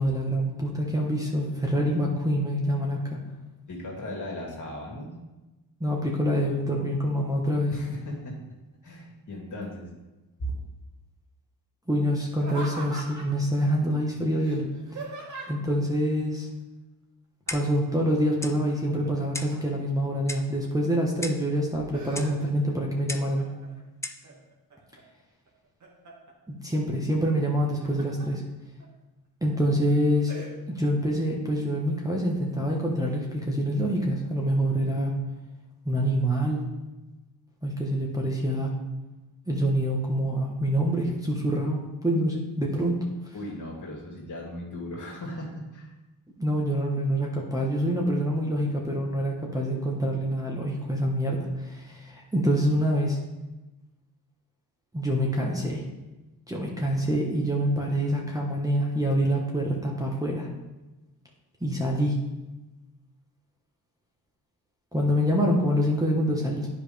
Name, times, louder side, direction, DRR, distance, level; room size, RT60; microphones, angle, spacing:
voice 1, 0.0-3.2 5.8-7.7 11.9-14.7 15.5-16.5 17.5-23.5 26.5-28.4 29.4-30.3 30.7-35.1 35.8-36.6 37.6-38.8 39.5-43.3 46.4-53.2 54.9-55.8 56.5-60.5 61.6-62.2 64.9-66.7, equal, 10° right, -2 dB, 1.3 m, -26 dB
voice 2, 3.7-5.1 7.7-8.4 8.8-9.9 10.4-10.5 43.3-45.9, equal, 50° left, -2 dB, 2.2 m, -37 dB
Laughter, 12.3-13.4 14.4-15.7 17.5-17.9 18.2-19.8 20.4-21.1 21.5-22.7 23.1-23.7 24.2-25.0 25.5-26.3 27.5-28.3 28.8-28.9 29.4-29.7 30.3-30.5, right 2 dB, 50° right, 1.9 m, -41 dB
Clock, 17.5-17.8 18.4-18.6 19.3-19.6 20.3-20.6 21.2-21.5 22.2-22.4 23.1-23.4 24.0-24.3, left 2 dB, 5° left, 0.5 m, -36 dB
9.6 x 5.0 x 3.5 m, 1.1 s
cardioid pair, 80°, 39 cm